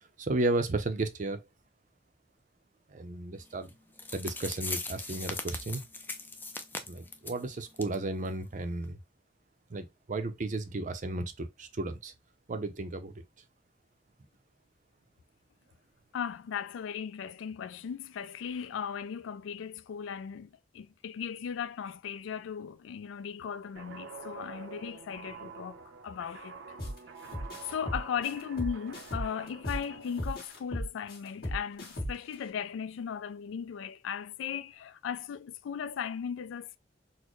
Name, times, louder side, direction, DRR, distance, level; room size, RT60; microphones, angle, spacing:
voice 1, 0.2-1.4 2.9-3.7 4.1-5.8 6.9-9.0 9.7-12.1 12.5-13.1, right 2 dB, 40° right, 0.5 m, -33 dB
sound 1, 3.7-3.8 4.0-7.4 7.8-7.9 8.2-8.3 8.8-8.9, left 3 dB, 10° left, 0.4 m, -39 dB
voice 2, 16.1-26.6 27.7-36.8, left 7 dB, 90° left, 0.3 m, -37 dB
Guitar, 23.7-30.3, right 5 dB, 85° right, 0.7 m, -47 dB
sound 2, 26.8-27.0 27.3-29.8 30.2-32.3, equal, 50° left, 1.6 m, -35 dB
4.1 x 2.1 x 3.0 m
head